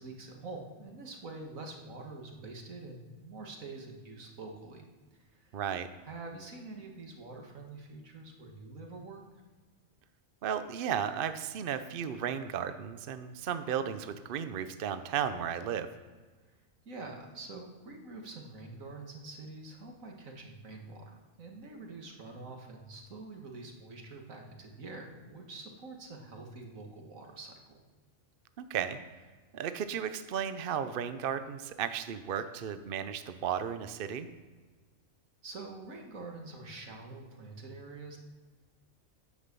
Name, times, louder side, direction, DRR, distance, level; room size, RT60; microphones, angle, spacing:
voice 1, 0.0-4.9 5.2-5.5 6.0-9.2 16.9-27.8 35.4-38.2, right 3 dB, 75° right, 2 dB, 2.1 m, -46 dB
voice 2, 5.5-5.9 10.4-15.9 28.6-29.0 29.5-34.3, right 8 dB, 55° right, 10 dB, 0.7 m, -34 dB
9.9 x 7.3 x 6.8 m, 1.3 s
omnidirectional pair, 1.4 m